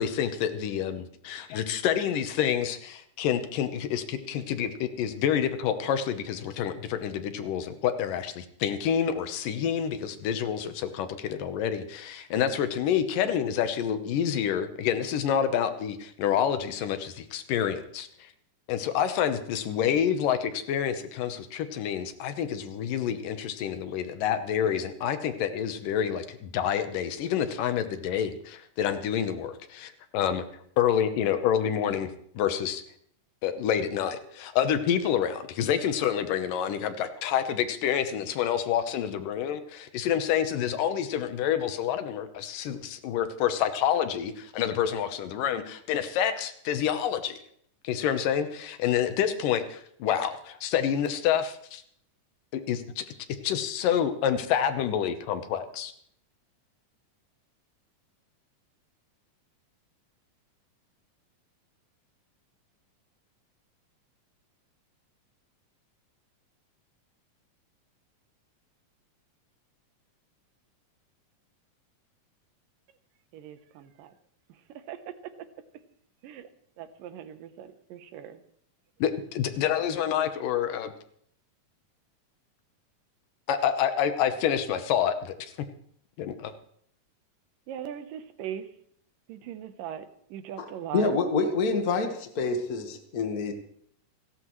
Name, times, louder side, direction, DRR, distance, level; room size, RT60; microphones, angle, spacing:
voice 1, 0.0-18.3 18.7-30.4 30.8-32.8 33.4-47.4 47.8-51.8 52.5-53.0 53.4-55.9 79.0-80.9 83.5-85.4 86.2-86.5, left 9 dB, 80° left, 9 dB, 2.7 m, -28 dB
voice 2, 73.3-74.1 74.9-75.0 76.2-76.5 76.8-78.4 87.7-88.6 89.3-90.0 90.3-91.1, right 9 dB, 80° right, 10 dB, 2.7 m, -39 dB
voice 3, 90.9-93.5, left 4 dB, 45° left, 5 dB, 1.1 m, -27 dB
29.5 x 12.0 x 3.2 m, 0.65 s
omnidirectional pair, 3.8 m